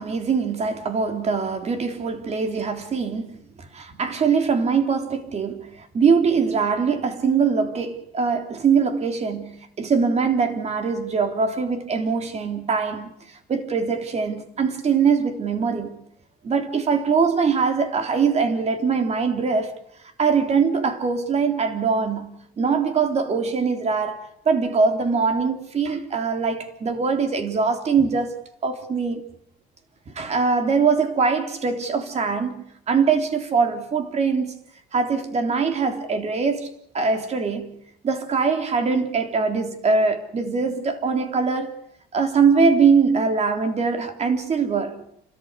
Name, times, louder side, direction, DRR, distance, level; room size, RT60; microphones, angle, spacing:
voice 1, 0.0-3.4 3.7-13.1 13.5-16.0 16.4-19.7 20.2-22.3 22.6-24.2 24.5-28.4 28.6-29.2 30.2-34.5 34.9-37.8 38.0-41.7 42.1-45.0, right 5 dB, 40° right, 3.6 m, -22 dB
29.5 x 13.5 x 9.8 m
cardioid pair, 110°, 17 cm